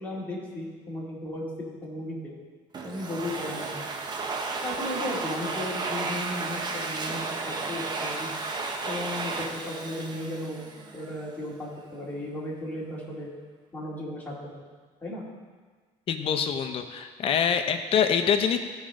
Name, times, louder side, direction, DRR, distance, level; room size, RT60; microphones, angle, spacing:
voice 1, 0.0-2.3 2.8-4.0 4.6-8.3 8.8-10.7 10.9-13.3 13.7-14.5 15.0-15.2, left 1 dB, 10° left, -6 dB, 2.5 m, -35 dB
Domestic sounds home sounds, 2.7-11.2, right 3 dB, 35° right, 0.8 m, -33 dB
voice 2, 16.1-18.6, left 7 dB, 45° left, 8 dB, 0.7 m, -25 dB
15.0 x 5.2 x 3.7 m, 1.5 s
cardioid pair, 140°, 13 cm